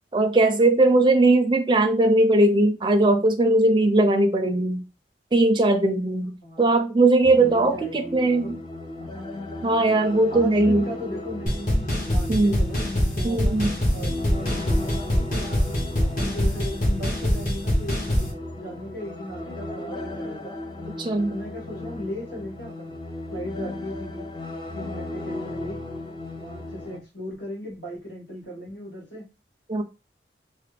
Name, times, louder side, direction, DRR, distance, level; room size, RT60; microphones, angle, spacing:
voice 1, 0.1-4.8 5.3-8.6 9.6-10.9 12.3-12.6 13.2-13.7 21.0-21.3 29.7-29.8, right 2 dB, 25° right, 6 dB, 0.5 m, -19 dB
voice 2, 6.4-6.8 7.4-8.6 9.0-9.3 10.3-12.8 13.1-20.6 21.3-23.0 23.3-24.3 24.7-25.8 26.4-29.3, equal, 70° left, -5 dB, 1.8 m, -37 dB
sound 1, 7.2-27.0, left 2 dB, 25° left, 0.5 m, -36 dB
sound 2, 11.5-18.3, equal, 50° left, 1.2 m, -24 dB
3.2 x 2.1 x 3.3 m, 0.28 s
head